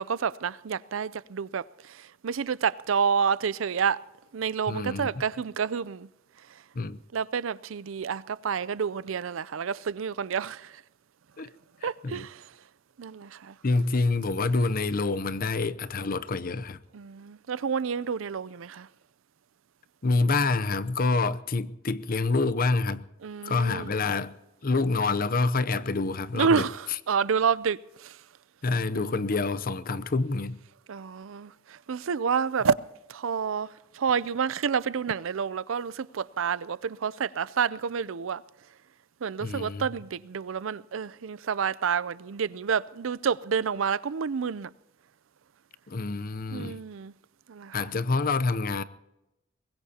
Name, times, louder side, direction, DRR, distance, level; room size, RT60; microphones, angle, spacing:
voice 1, 0.0-1.6 2.2-4.0 4.3-6.1 7.1-10.7 11.8-12.4 13.0-13.5 16.9-18.9 23.2-23.9 26.3-26.8 27.1-28.1 28.9-29.1 30.9-31.5 31.9-32.8 33.1-33.7 33.9-38.4 39.2-44.7 46.5-47.1 47.5-47.8, right 6 dB, 80° right, 0.5 m, -29 dB
voice 2, 4.7-5.2 6.7-7.0 11.4-11.5 11.8-12.3 13.6-16.8 20.0-23.1 23.4-26.7 28.6-30.6 39.4-39.9 45.9-46.8 47.7-48.8, left 3 dB, 45° left, 0.7 m, -27 dB
23.5 x 20.5 x 2.9 m
head